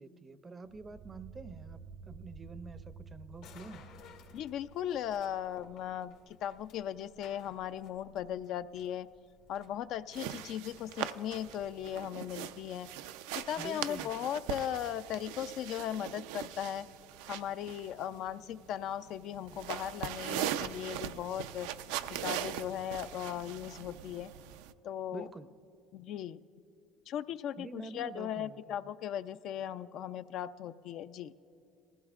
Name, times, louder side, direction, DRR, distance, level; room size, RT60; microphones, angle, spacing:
voice 1, 0.0-1.8 2.0-3.9 13.6-14.3 25.1-25.5 27.6-28.9, right 3 dB, 25° right, 13 dB, 0.5 m, -47 dB
sound 1, 0.6-5.9, right 5 dB, 65° right, 0.8 m, -52 dB
sound 2, 3.4-12.1, left 6 dB, 85° left, 1.8 m, -59 dB
voice 2, 4.3-9.1 9.5-12.9 13.3-16.9 17.3-21.7 22.1-24.3 24.8-25.3 25.9-26.4 27.1-31.3, left 10 dB, 60° left, 12 dB, 0.3 m, -38 dB
sound 3, 10.1-24.7, right 11 dB, 85° right, 0.3 m, -40 dB
19.5 x 15.0 x 2.4 m, 2.8 s
supercardioid pair, 100°, 0 cm